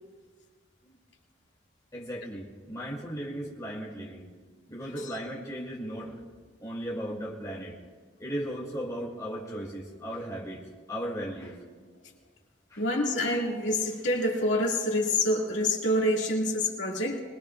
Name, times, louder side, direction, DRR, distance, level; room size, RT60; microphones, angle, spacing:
voice 1, 1.9-4.3 4.7-6.2 6.6-7.8 8.2-10.6 10.9-11.6 12.7-12.8, equal, 20° left, -4 dB, 2.8 m, -36 dB
voice 2, 12.8-17.2, left 1 dB, 90° left, -1 dB, 2.3 m, -27 dB
24.0 x 20.5 x 2.5 m, 1.5 s
head